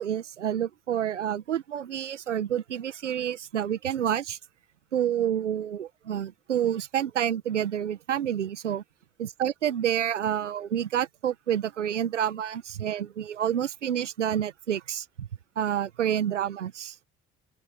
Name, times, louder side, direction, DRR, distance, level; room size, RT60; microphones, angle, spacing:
voice 1, 0.0-4.4 4.9-8.8 9.2-15.3 15.5-16.9, right 10 dB, 85° right, 1.7 m, -28 dB
open air
figure-of-eight pair, 45°, 35 cm